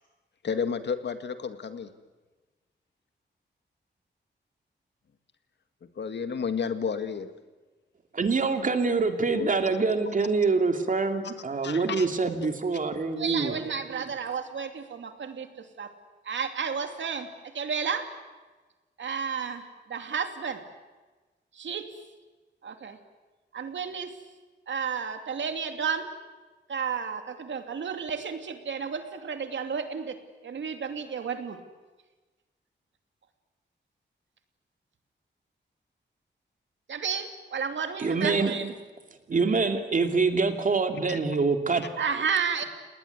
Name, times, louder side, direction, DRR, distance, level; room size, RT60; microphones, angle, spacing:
voice 1, 0.4-1.9 6.0-7.3 9.3-9.5 11.2-11.3 11.6-12.1 41.1-41.2, left 6 dB, 70° left, 9 dB, 2.0 m, -31 dB
voice 2, 8.1-13.5 38.0-38.5 39.3-41.8, right 4 dB, 45° right, 6 dB, 2.8 m, -25 dB
voice 3, 13.2-15.9 16.2-17.3 17.5-18.0 19.0-19.6 19.9-20.6 21.5-21.9 22.6-23.0 23.5-24.1 24.7-26.1 26.7-30.2 30.4-31.6 36.9-38.7 39.3-39.6 42.0-42.6, right 6 dB, 80° right, 6 dB, 2.7 m, -32 dB
29.5 x 19.5 x 9.6 m, 1.3 s
wide cardioid pair, 145°, 19 cm